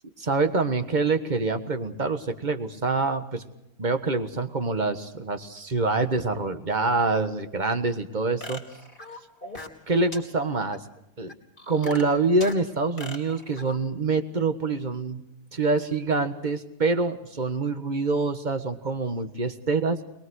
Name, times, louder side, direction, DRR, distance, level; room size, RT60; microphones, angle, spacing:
voice 1, 0.2-3.4 3.8-8.6 9.9-10.8 11.2-11.3 11.7-15.2 15.5-20.0, right 3 dB, 25° right, 9 dB, 1.3 m, -26 dB
sound 1, 8.4-9.8 10.1-10.2 10.7-10.8 11.3-12.6 13.0-13.8, left 2 dB, 25° left, 3.2 m, -39 dB
22.5 x 22.0 x 6.4 m, 0.87 s
omnidirectional pair, 2.3 m